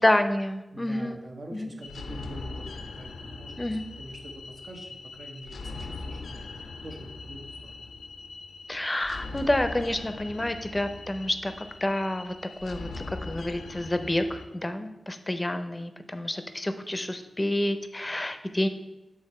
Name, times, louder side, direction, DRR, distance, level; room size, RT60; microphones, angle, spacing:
voice 1, 0.0-1.8 3.6-4.0 8.7-12.3 12.6-12.9 13.3-18.7, left 1 dB, 20° left, 9 dB, 0.5 m, -28 dB
voice 2, 0.7-7.9, right 1 dB, 60° right, 1 dB, 1.1 m, -45 dB
sound 1, 1.8-14.4, left 3 dB, 85° left, 0.4 m, -41 dB
7.1 x 3.5 x 4.2 m, 0.98 s
cardioid pair, 65°, 0 cm